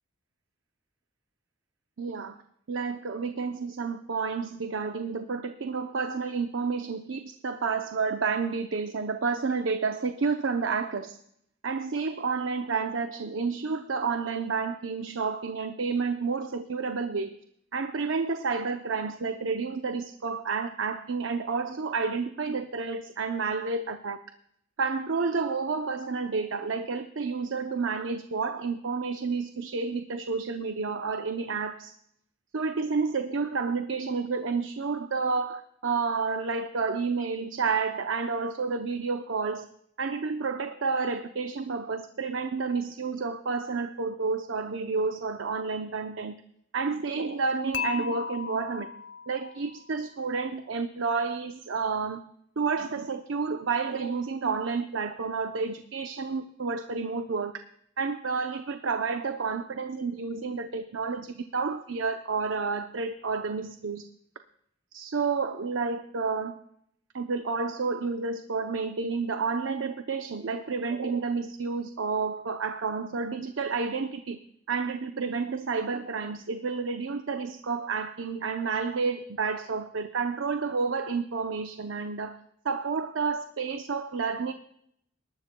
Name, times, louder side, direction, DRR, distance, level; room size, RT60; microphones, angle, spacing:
voice 1, 2.0-2.4 2.7-11.2 11.6-17.4 17.7-24.2 24.8-31.9 32.5-39.7 40.0-46.3 46.7-48.9 49.3-52.2 52.6-57.6 58.0-64.0 64.9-66.6 67.1-74.4 74.7-82.4 82.6-84.5, right 4 dB, 75° right, 7 dB, 0.6 m, -30 dB
Dishes pots and pans / Chink clink, 47.7-49.9, left 6 dB, 65° left, 0.5 m, -35 dB
20.5 x 12.0 x 2.2 m, 0.72 s
head